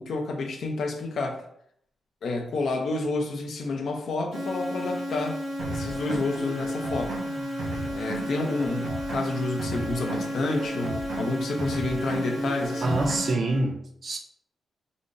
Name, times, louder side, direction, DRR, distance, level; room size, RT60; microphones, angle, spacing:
voice 1, 0.0-1.4 2.2-5.4 5.7-7.2 7.9-13.0, left 3 dB, 70° left, 0.6 m, -30 dB
sound 1, 4.3-13.3, equal, 30° right, 0.8 m, -33 dB
sound 2, 5.6-13.6, right 2 dB, 70° right, 0.9 m, -36 dB
voice 2, 12.8-14.2, right 2 dB, 45° right, 0.3 m, -26 dB
3.8 x 2.1 x 3.8 m
wide cardioid pair, 120°, 0 cm